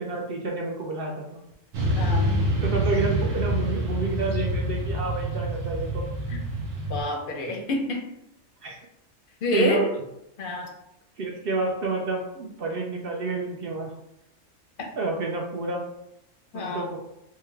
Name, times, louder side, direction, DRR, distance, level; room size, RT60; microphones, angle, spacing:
voice 1, 0.0-1.4 2.6-6.0 8.6-8.8 9.5-9.9 11.2-13.9 15.0-15.8 16.5-17.0, right 3 dB, 60° right, 0 dB, 0.6 m, -29 dB
Motorcycle / Traffic noise roadway noise, 1.7-7.0, right 1 dB, 75° right, 1.1 m, -26 dB
voice 2, 2.0-2.3 6.3-6.4 6.9-8.0 9.4-9.9 10.4-10.7 16.5-16.9, left 1 dB, 55° left, 1 dB, 0.7 m, -27 dB
3.5 x 2.2 x 3.2 m, 0.83 s
omnidirectional pair, 1.4 m